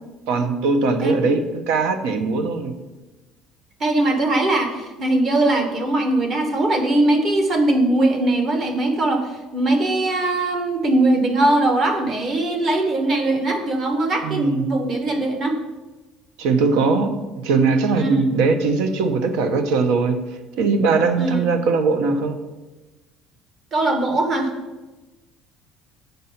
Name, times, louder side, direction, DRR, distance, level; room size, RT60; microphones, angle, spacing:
voice 1, 0.3-1.4 1.7-2.7 14.2-14.6 16.4-20.1 20.6-22.4, right 4 dB, 75° right, 8 dB, 0.9 m, -20 dB
voice 2, 1.0-1.4 3.8-15.6 17.9-18.2 21.2-21.5 23.7-24.5, right 2 dB, 30° right, 5 dB, 1.1 m, -20 dB
7.3 x 5.4 x 5.7 m, 1.1 s
cardioid pair, 175°, 0 cm